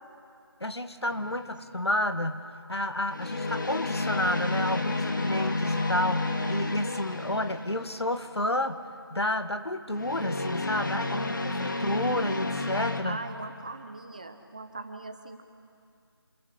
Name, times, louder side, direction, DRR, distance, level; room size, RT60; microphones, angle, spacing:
voice 1, 0.6-2.4 2.7-8.8 9.1-13.2, left 1 dB, 85° left, 8 dB, 2.0 m, -30 dB
sound 1, 1.1-1.4 3.1-8.2 9.9-13.0, left 2 dB, 50° left, 2.0 m, -31 dB
voice 2, 13.0-15.4, right 3 dB, 20° right, 7 dB, 0.9 m, -40 dB
27.0 x 22.0 x 6.9 m, 2.4 s
figure-of-eight pair, 170°, 13 cm